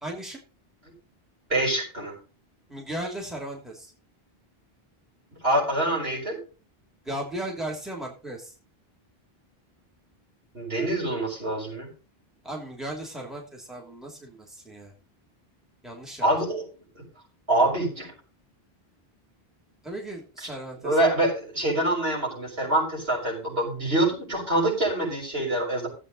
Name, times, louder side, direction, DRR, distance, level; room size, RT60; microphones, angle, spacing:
voice 1, 0.0-0.4 2.7-3.9 7.0-8.5 12.4-14.9 15.8-16.3 19.8-21.3, right 1 dB, ahead, 0 dB, 2.8 m, -36 dB
voice 2, 1.5-2.1 5.4-6.4 10.5-11.9 16.2-16.6 17.5-18.1 20.4-20.5 20.8-25.9, right 1 dB, 75° right, -3 dB, 6.6 m, -25 dB
15.0 x 8.1 x 4.1 m, 0.34 s
omnidirectional pair, 1.0 m